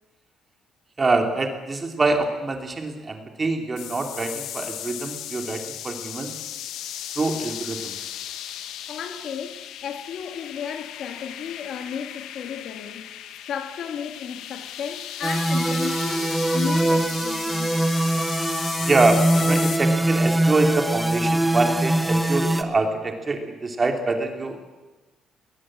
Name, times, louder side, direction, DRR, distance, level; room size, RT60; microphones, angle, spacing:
voice 1, 1.0-6.3 7.2-8.0 18.8-24.6, right 3 dB, 20° right, 2.7 m, -25 dB
sound 1, 3.8-19.8, left 11 dB, 80° left, 1.5 m, -36 dB
voice 2, 8.9-17.8, left 7 dB, 55° left, 1.9 m, -34 dB
sound 2, 15.2-22.6, right 1 dB, 5° right, 1.2 m, -22 dB
20.5 x 20.0 x 8.7 m
cardioid pair, 170°, 0 cm